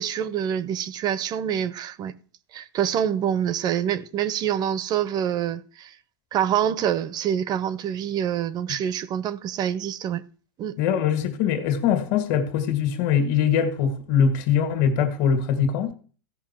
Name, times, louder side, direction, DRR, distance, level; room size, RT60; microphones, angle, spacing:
voice 1, 0.0-2.1 2.5-5.9 6.3-10.2 10.6-10.7, right 9 dB, 30° right, 0.7 m, -26 dB
voice 2, 10.8-15.9, left 7 dB, 55° left, 1.8 m, -22 dB
15.5 x 5.5 x 4.4 m
hypercardioid pair, 120°, 13 cm